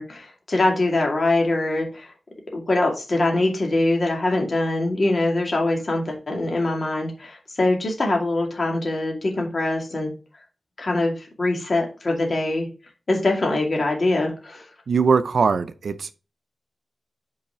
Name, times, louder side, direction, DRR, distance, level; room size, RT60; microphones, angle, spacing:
voice 1, 0.0-2.1 2.5-10.1 10.8-12.7 13.1-14.6, left 2 dB, 45° left, 2.4 m, -23 dB
voice 2, 14.9-16.1, right 5 dB, 75° right, 0.5 m, -21 dB
5.7 x 4.8 x 5.0 m
wide cardioid pair, 120°, 0 cm